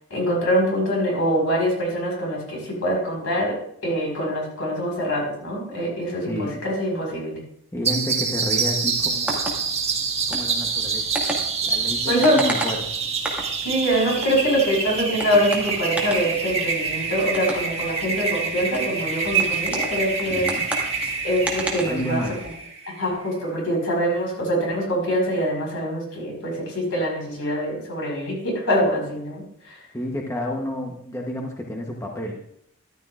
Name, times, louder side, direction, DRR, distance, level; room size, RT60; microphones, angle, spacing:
voice 1, 0.1-3.6 3.8-7.4 12.1-12.4 13.6-20.5 21.2-22.2 22.9-29.8, equal, 70° left, -1 dB, 4.8 m, -24 dB
voice 2, 6.3-6.6 7.7-9.5 10.3-11.1 11.6-13.0 20.3-20.7 21.8-22.4 29.9-32.4, left 1 dB, 15° left, 0 dB, 1.0 m, -30 dB
sound 1, 7.8-23.1, right 5 dB, 30° right, 1.6 m, -27 dB
sound 2, 8.9-22.5, right 1 dB, 5° right, 1.9 m, -34 dB
14.0 x 12.0 x 2.5 m, 0.71 s
head